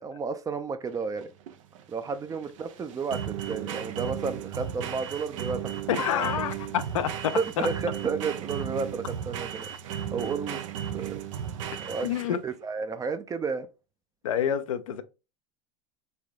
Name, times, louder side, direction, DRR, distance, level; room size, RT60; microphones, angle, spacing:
voice 1, 0.0-1.3 1.9-5.9 6.2-6.3 7.4-10.6 10.9-11.1 11.8-12.1 12.4-13.7, right 5 dB, 20° right, 0.5 m, -32 dB
sound 1, 0.9-12.5, right 10 dB, 70° right, 0.6 m, -35 dB
voice 2, 5.9-7.7 12.0-12.4 14.2-15.0, left 9 dB, 80° left, 0.5 m, -28 dB
3.5 x 3.4 x 2.4 m
hypercardioid pair, 90°, 17 cm